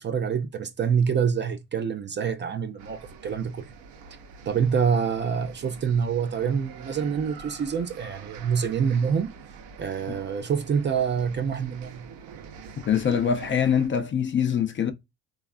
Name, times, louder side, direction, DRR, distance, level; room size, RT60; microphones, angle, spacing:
voice 1, 0.0-3.7 4.5-9.3 9.8-12.1, right 7 dB, 30° right, 0.4 m, -26 dB
sound 1, 2.8-13.9, right 5 dB, 70° right, 0.8 m, -45 dB
voice 2, 12.8-14.9, left 8 dB, 30° left, 0.5 m, -23 dB
3.2 x 2.4 x 2.3 m
supercardioid pair, 80°, 37 cm